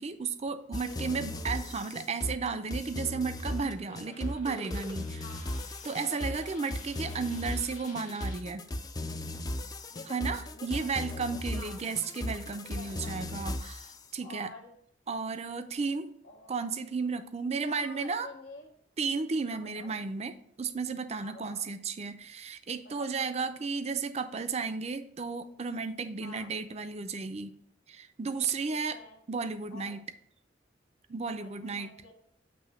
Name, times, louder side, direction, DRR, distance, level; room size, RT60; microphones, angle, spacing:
voice 1, 0.0-5.2 5.8-8.6 10.1-14.5 15.1-16.1 16.5-18.3 19.0-27.5 27.9-29.0 29.3-30.0 31.1-31.9, right 4 dB, 35° right, 10 dB, 0.5 m, -34 dB
sound 1, 0.7-14.0, left 1 dB, 20° left, 0.4 m, -37 dB
voice 2, 0.8-1.7 3.8-4.3 5.2-5.6 6.0-6.7 9.9-11.8 12.7-13.5 14.2-14.7 16.2-16.7 17.5-18.7 19.5-20.0 21.2-21.7 22.8-23.3 26.2-26.5 28.7-29.2 29.7-30.0 31.3-32.1, left 3 dB, 85° left, 1 dB, 1.4 m, -50 dB
Coin (dropping), 2.9-8.4, left 4 dB, 40° left, 1.2 m, -54 dB
7.6 x 3.2 x 5.7 m, 0.68 s
head